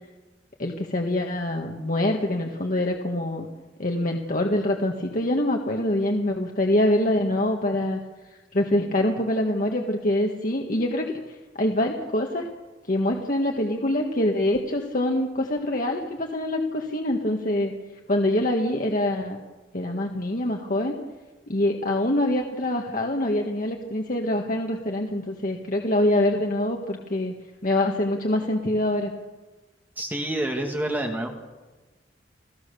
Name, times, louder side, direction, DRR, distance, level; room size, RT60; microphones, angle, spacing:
voice 1, 0.6-3.5 3.8-8.0 8.5-12.5 12.9-17.7 18.1-19.4 19.7-20.9 21.5-27.3 27.6-29.1, left 1 dB, 50° left, 2 dB, 1.6 m, -25 dB
voice 2, 30.0-31.3, right 1 dB, 10° right, 2 dB, 2.3 m, -27 dB
28.5 x 16.0 x 7.0 m, 1.2 s
head